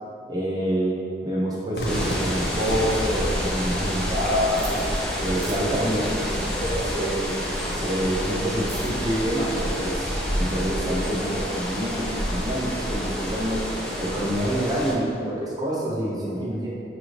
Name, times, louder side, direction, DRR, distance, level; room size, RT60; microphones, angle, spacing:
voice 1, 0.3-0.9 1.2-4.8 5.2-7.3 7.7-10.1 10.4-13.6 14.0-16.7, equal, 20° right, -5 dB, 0.7 m, -27 dB
Cheering / Fireworks, 1.7-7.7, equal, 65° left, 0.7 m, -35 dB
sound 1, 1.8-14.9, equal, 5° left, 0.4 m, -28 dB
sound 2, 4.6-10.2, right 3 dB, 70° right, 0.7 m, -46 dB
6.0 x 2.5 x 3.1 m, 2.5 s
head